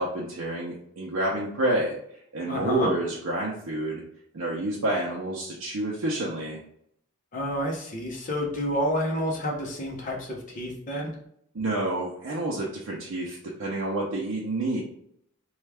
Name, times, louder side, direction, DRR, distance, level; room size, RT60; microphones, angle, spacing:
voice 1, 0.0-1.9 2.3-4.0 4.3-6.6 11.5-14.8, right 1 dB, 85° right, -4 dB, 0.6 m, -28 dB
voice 2, 2.5-2.9 7.3-11.1, equal, 35° left, -2 dB, 0.8 m, -29 dB
3.2 x 2.3 x 3.3 m, 0.71 s
head